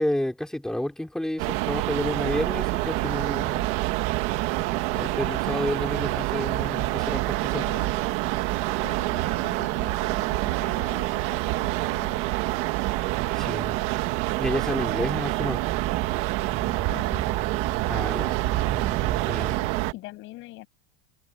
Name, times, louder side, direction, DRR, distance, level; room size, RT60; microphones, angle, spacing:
voice 1, 0.0-3.7 4.9-7.6 13.3-13.8 14.4-15.6 17.9-18.4 18.9-19.6, left 1 dB, ahead, 2.7 m, -30 dB
sound 1, 1.4-19.9, right 19 dB, 40° right, 1.5 m, -27 dB
sound 2, 2.0-19.5, right 10 dB, 20° right, 7.2 m, -39 dB
voice 2, 7.6-7.9 8.8-12.7 16.9-17.3 19.6-20.7, left 18 dB, 35° left, 6.5 m, -44 dB
supercardioid pair, 175°, 35 cm